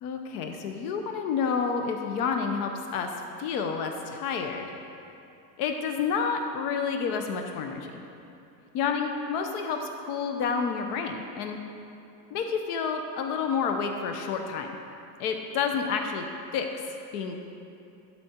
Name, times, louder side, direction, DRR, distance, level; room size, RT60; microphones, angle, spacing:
voice 1, 0.0-3.1 3.4-4.7 5.6-8.0 8.7-11.6 12.3-14.7 15.2-16.2 16.5-16.7 17.1-17.4, left 6 dB, 90° left, 4 dB, 0.8 m, -29 dB
11.5 x 4.3 x 4.3 m, 2.8 s
cardioid pair, 160°, 45 cm